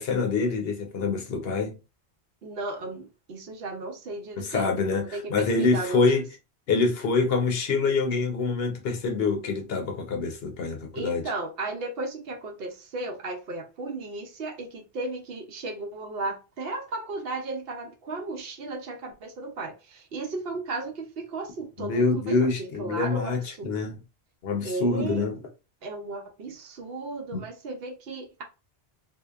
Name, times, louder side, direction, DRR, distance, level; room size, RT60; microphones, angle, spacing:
voice 1, 0.0-1.8 4.4-6.2 6.7-11.2 21.8-24.0 24.4-25.4 27.3-27.4, left 4 dB, 70° left, 0.8 m, -26 dB
voice 2, 2.4-4.7 5.0-6.0 10.9-23.8 24.6-25.3 25.8-28.4, right 2 dB, 70° right, 0.8 m, -35 dB
2.7 x 2.0 x 2.2 m
omnidirectional pair, 1.1 m